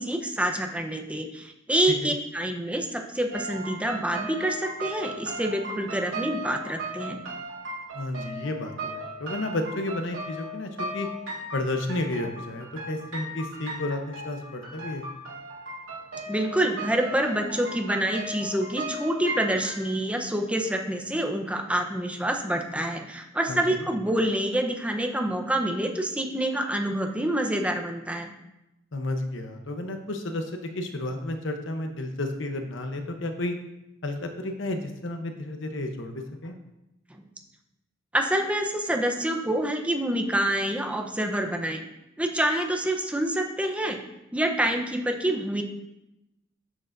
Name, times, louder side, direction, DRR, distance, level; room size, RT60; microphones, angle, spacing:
voice 1, 0.0-7.2 16.3-28.3 37.1-37.2 38.1-41.8 42.2-44.0 44.3-45.6, right 1 dB, 5° right, 3 dB, 0.8 m, -27 dB
sound 1, 3.3-19.8, right 1 dB, 80° right, 2.4 m, -37 dB
voice 2, 7.9-11.1 11.5-15.1 23.5-23.8 28.9-33.6 34.0-36.6, left 2 dB, 65° left, 5 dB, 0.9 m, -32 dB
12.0 x 6.7 x 2.6 m, 0.91 s
head